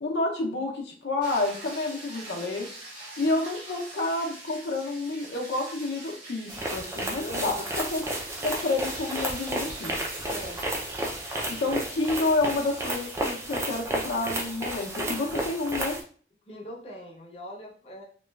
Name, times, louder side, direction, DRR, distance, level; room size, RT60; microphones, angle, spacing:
voice 1, 0.0-2.7 3.2-8.1 8.4-9.9 11.5-16.0, left 2 dB, 80° left, 0 dB, 0.5 m, -29 dB
sound 1, 1.2-15.9, right 1 dB, 50° right, 1.2 m, -45 dB
sound 2, 6.5-16.0, right 1 dB, 15° right, 0.3 m, -32 dB
voice 2, 7.2-7.8 10.3-10.6 16.4-18.0, left 1 dB, 35° left, -2 dB, 0.5 m, -41 dB
2.9 x 2.2 x 2.2 m, 0.44 s
head